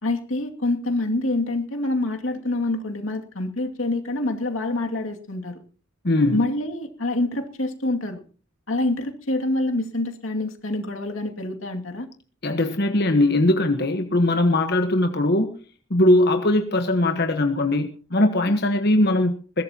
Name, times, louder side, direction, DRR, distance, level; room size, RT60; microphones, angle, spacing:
voice 1, 0.0-5.6 6.3-8.2 8.7-12.1, left 2 dB, 90° left, 3 dB, 2.4 m, -26 dB
voice 2, 6.0-6.4 12.4-15.5 15.9-19.6, left 1 dB, 55° left, 6 dB, 1.2 m, -20 dB
21.0 x 16.0 x 2.9 m, 0.39 s
head